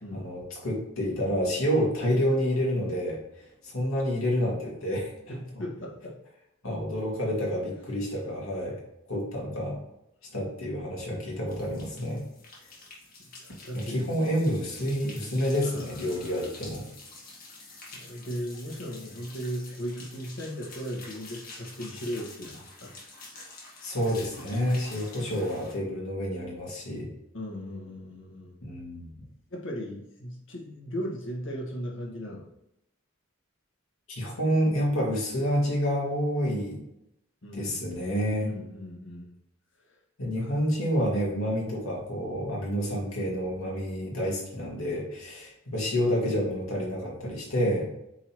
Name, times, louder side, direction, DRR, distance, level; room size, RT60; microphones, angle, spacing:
voice 1, 0.1-3.2 3.6-5.1 6.6-8.8 9.1-9.8 10.3-12.2 13.9-16.9 23.8-27.1 28.6-29.1 34.1-36.8 37.5-38.5 40.2-48.0, equal, 85° left, -4 dB, 2.5 m, -28 dB
voice 2, 5.3-6.2 12.8-12.9 13.4-14.1 15.6-16.5 17.9-22.9 27.3-28.5 29.5-32.4 37.4-37.7 38.4-39.3 39.8-40.0 40.4-40.7, equal, 65° left, -2 dB, 1.8 m, -37 dB
sound 1, 11.5-25.8, left 3 dB, 45° left, 1.7 m, -48 dB
8.2 x 4.1 x 3.1 m, 0.83 s
head